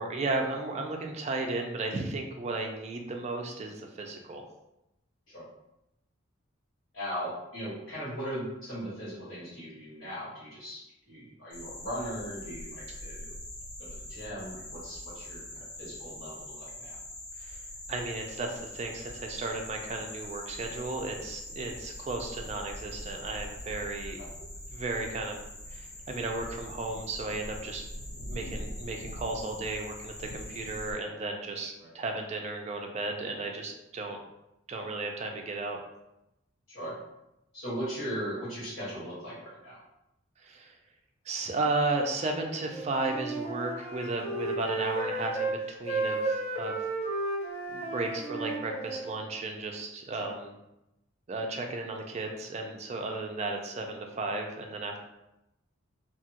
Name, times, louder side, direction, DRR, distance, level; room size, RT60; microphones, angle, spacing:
voice 1, 0.0-4.4 17.4-17.6 17.9-24.2 24.7-25.4 25.7-27.8 28.3-34.2 34.7-35.8 40.4-40.8 41.3-46.8 47.7-50.5 51.3-55.0, right 2 dB, 35° right, 3 dB, 0.3 m, -34 dB
voice 2, 6.9-13.4 13.8-17.0 24.2-24.3 31.8-31.9 36.7-37.0 37.5-39.8 50.2-50.3 53.1-53.2, equal, 85° left, -7 dB, 1.4 m, -38 dB
sound 1, 11.5-30.9, left 1 dB, 60° left, 1.1 m, -43 dB
Wind instrument woodwind instrument, 42.7-45.6 45.9-49.2, right 2 dB, 30° left, 0.5 m, -33 dB
2.8 x 2.3 x 2.8 m, 0.89 s
head